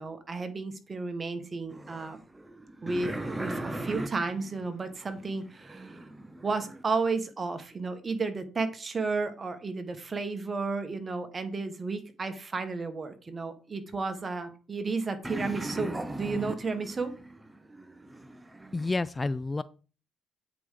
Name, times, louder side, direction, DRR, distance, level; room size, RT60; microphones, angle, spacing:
voice 1, 0.0-2.2 2.8-6.1 6.4-17.1, right 4 dB, 35° right, 8 dB, 1.4 m, -33 dB
sound 1, 1.7-6.8 15.2-18.9, right 1 dB, 15° right, 0.8 m, -38 dB
voice 2, 18.7-19.6, left 3 dB, 25° left, 17 dB, 0.3 m, -29 dB
8.7 x 4.8 x 3.8 m, 0.38 s
supercardioid pair, 70°, 0 cm